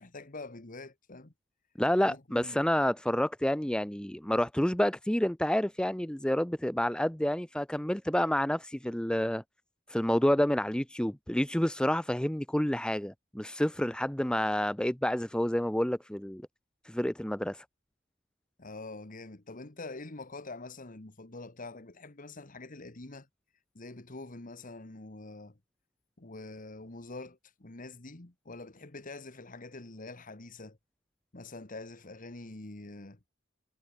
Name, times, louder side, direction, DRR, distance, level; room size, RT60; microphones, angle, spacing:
voice 1, 0.0-1.3 2.0-2.6 18.6-23.3 23.8-25.6 26.2-30.8 31.3-33.2, left 2 dB, 45° left, 1.6 m, -45 dB
voice 2, 1.8-9.4 9.9-16.4 16.9-17.6, left 1 dB, 5° left, 0.7 m, -29 dB
head